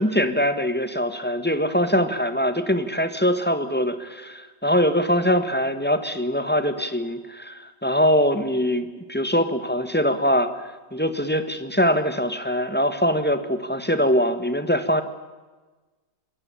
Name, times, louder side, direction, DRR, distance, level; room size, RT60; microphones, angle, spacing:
voice 1, 0.0-15.0, equal, 5° left, 10 dB, 1.5 m, -23 dB
27.0 x 22.0 x 7.1 m, 1.3 s
omnidirectional pair, 2.0 m